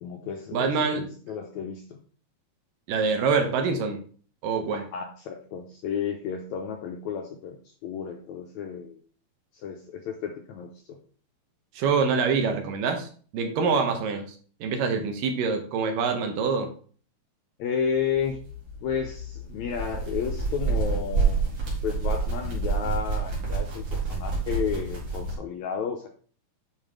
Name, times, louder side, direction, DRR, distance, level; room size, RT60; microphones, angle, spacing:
voice 1, 0.0-2.0 4.7-7.6 7.8-9.0 9.5-11.0 17.6-18.4 18.8-21.4 21.8-26.1, left 7 dB, 80° left, 4 dB, 1.7 m, -32 dB
voice 2, 0.5-1.0 2.9-4.0 4.4-4.8 11.8-13.1 13.3-14.3 14.6-16.7, right 5 dB, 75° right, 5 dB, 2.6 m, -25 dB
sound 1, 18.1-25.3, right 4 dB, 45° right, 3.1 m, -28 dB
9.1 x 4.7 x 3.6 m, 0.43 s
omnidirectional pair, 4.1 m